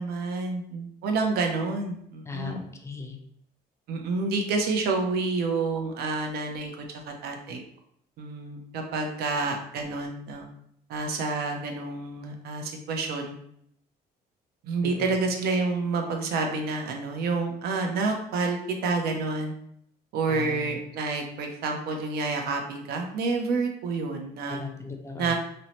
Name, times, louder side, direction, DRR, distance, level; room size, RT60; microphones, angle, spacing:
voice 1, 0.0-2.6 3.9-7.6 8.2-10.5 10.9-13.4 14.6-19.5 20.1-24.6 25.2-25.3, right 3 dB, 70° right, 3 dB, 0.5 m, -29 dB
voice 2, 2.3-3.2 14.8-15.2 20.3-20.7 24.5-25.3, left 4 dB, 15° left, 3 dB, 0.4 m, -37 dB
2.6 x 2.1 x 2.9 m, 0.70 s
cardioid pair, 110°, 17 cm